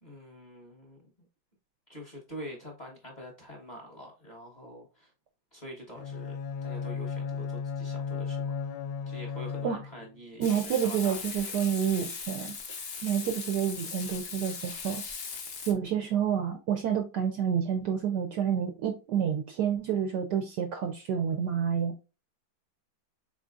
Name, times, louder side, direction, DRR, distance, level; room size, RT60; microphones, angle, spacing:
voice 1, 0.0-1.3 1.9-5.1 5.5-6.4 6.6-8.6 9.1-11.5, equal, 25° left, -1 dB, 1.0 m, -45 dB
Bowed string instrument, 6.0-10.2, left 6 dB, 90° left, 1.4 m, -35 dB
Frying (food), 10.4-15.7, left 5 dB, 65° left, 0.6 m, -39 dB
voice 2, 10.4-12.5 13.0-15.0 15.7-21.9, right 8 dB, 70° right, 5 dB, 1.0 m, -29 dB
4.4 x 3.7 x 2.4 m, 0.31 s
omnidirectional pair, 2.2 m